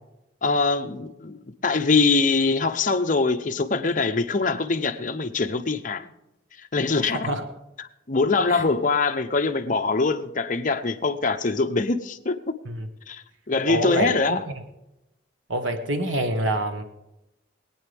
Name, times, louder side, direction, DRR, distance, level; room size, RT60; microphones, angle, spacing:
voice 1, 0.4-1.4 1.6-6.1 6.7-7.3 8.1-12.4 13.1-14.4, left 3 dB, 40° left, 0.8 m, -23 dB
voice 2, 13.7-14.5 15.5-16.8, right 1 dB, 80° right, 1.3 m, -27 dB
23.0 x 9.2 x 3.5 m
head